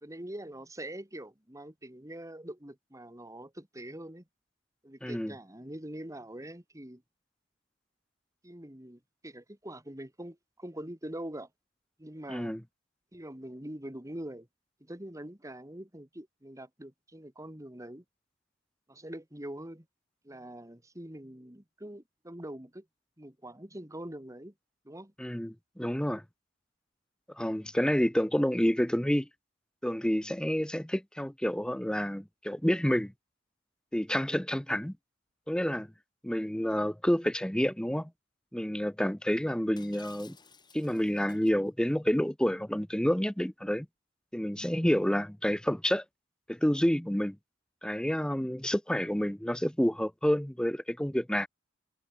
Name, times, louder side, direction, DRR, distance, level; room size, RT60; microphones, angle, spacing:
voice 1, 0.0-4.2 4.8-7.0 8.4-11.5 12.0-12.6 13.1-14.5 14.8-18.0 18.9-19.9 20.2-22.9 23.2-24.5 24.8-25.1, right 1 dB, 15° right, 2.6 m, -44 dB
voice 2, 5.0-5.3 12.3-12.6 25.2-26.2 27.4-29.3 29.8-33.1 33.9-34.9 35.5-35.9 36.2-38.1 38.5-40.4 40.7-43.9 44.3-46.0 46.5-47.4 47.8-51.5, equal, 5° left, 0.7 m, -29 dB
Shatter, 39.8-41.5, left 5 dB, 20° left, 4.6 m, -55 dB
head